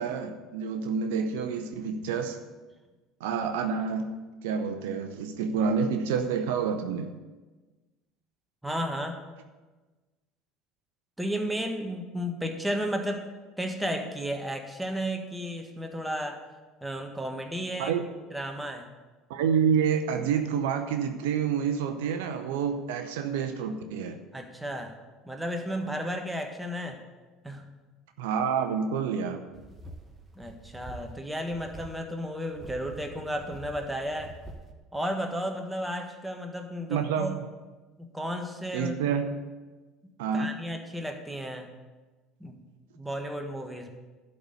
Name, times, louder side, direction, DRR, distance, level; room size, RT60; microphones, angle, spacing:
voice 1, 0.0-2.4 3.2-4.1 4.4-7.1 17.8-18.0 19.3-24.2 28.2-29.5 36.9-37.4 38.7-39.3 40.2-40.5, right 6 dB, 75° right, 7 dB, 0.7 m, -28 dB
voice 2, 8.6-9.2 11.2-13.3 13.6-16.4 16.8-18.0 18.3-18.9 24.3-24.9 25.2-27.0 27.4-27.7 30.4-34.3 34.9-37.4 38.0-39.0 40.3-41.7 42.4-42.6 42.9-43.9, equal, 5° right, 4 dB, 1.5 m, -33 dB
sound 1, 29.5-31.2 31.5-32.0 32.5-34.7, right 2 dB, 25° right, 1.4 m, -46 dB
12.0 x 4.2 x 8.1 m, 1.3 s
hypercardioid pair, 70°, 0 cm